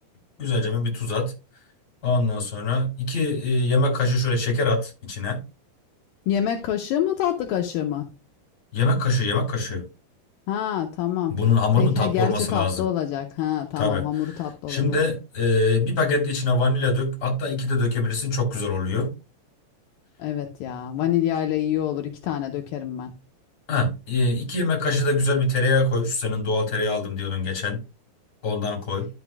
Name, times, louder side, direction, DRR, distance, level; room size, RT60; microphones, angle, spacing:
voice 1, 0.4-1.3 2.0-5.4 8.7-9.8 11.3-12.9 13.8-14.4 14.7-19.1 23.7-27.8 28.4-29.1, left 3 dB, 25° left, 3.0 m, -23 dB
voice 2, 6.3-8.1 10.5-11.4 11.8-15.0 20.2-23.1, left 11 dB, 80° left, 2.1 m, -26 dB
12.0 x 6.0 x 2.3 m
omnidirectional pair, 5.0 m